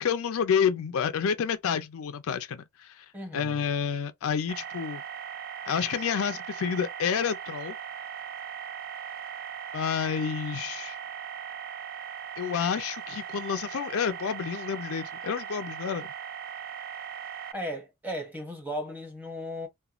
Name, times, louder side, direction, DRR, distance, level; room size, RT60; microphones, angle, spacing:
voice 1, 0.0-3.1 3.3-5.0 5.7-7.7 9.7-11.0 12.4-16.1, left 7 dB, 70° left, 0.4 m, -29 dB
voice 2, 3.1-3.6 17.5-19.7, equal, 10° right, 0.9 m, -36 dB
sound 1, 4.5-17.5, right 8 dB, 45° right, 0.4 m, -39 dB
2.9 x 2.2 x 2.3 m
head